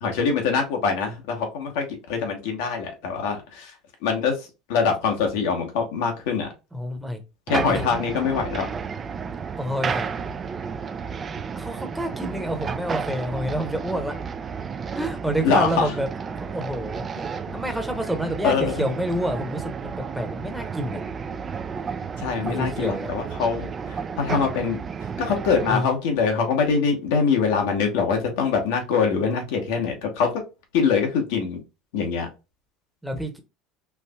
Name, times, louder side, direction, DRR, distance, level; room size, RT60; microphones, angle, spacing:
voice 1, 0.0-3.7 4.0-6.5 7.5-8.7 15.4-15.9 17.2-17.6 18.4-18.9 22.2-24.8 25.2-30.4 30.7-31.6 31.9-32.3, left 5 dB, 70° left, 1.0 m, -24 dB
voice 2, 6.7-7.2 7.7-7.8 9.6-10.4 11.6-14.2 14.9-16.1 16.4-17.0 17.5-21.0 22.6-23.1 25.7-25.9 33.0-33.4, equal, 5° right, 0.9 m, -28 dB
sound 1, 7.5-25.7, right 6 dB, 35° right, 0.4 m, -32 dB
4.5 x 2.6 x 2.2 m
hypercardioid pair, 75°, 0 cm